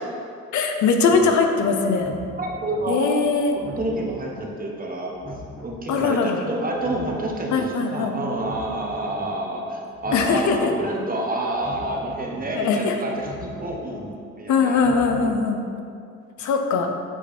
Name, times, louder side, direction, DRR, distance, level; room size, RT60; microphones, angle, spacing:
voice 1, 0.5-2.1 2.9-3.6 5.9-6.4 7.5-8.2 10.1-10.7 12.5-12.9 14.5-15.6 16.4-16.9, left 4 dB, 70° left, 4 dB, 0.7 m, -21 dB
sound 1, 1.1-1.2 1.9-2.8 3.5-4.4 5.1-6.0 6.7-7.6 8.3-9.2 9.9-10.8 11.5-12.4 13.1-14.0 14.7-15.4, left 1 dB, 25° left, 1.5 m, -40 dB
voice 2, 2.4-5.1 5.6-7.6 7.9-13.3 13.6-14.8 15.2-15.7, right 1 dB, 30° right, -1 dB, 1.1 m, -29 dB
8.4 x 3.1 x 4.3 m, 2.3 s
cardioid pair, 90°, 30 cm